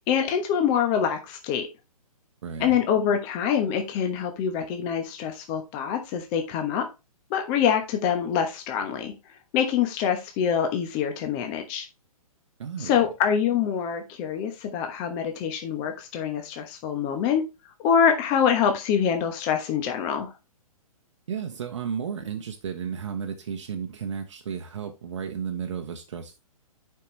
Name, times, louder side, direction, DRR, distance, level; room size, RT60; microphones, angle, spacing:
voice 1, 0.1-1.7 2.6-6.9 7.3-9.1 9.5-11.9 12.8-17.4 17.8-20.3, left 8 dB, 25° left, 1.2 m, -25 dB
voice 2, 2.4-2.8 12.6-13.1 21.3-26.4, right 7 dB, 50° right, 1.1 m, -33 dB
8.1 x 5.8 x 3.2 m
figure-of-eight pair, 125°, 19 cm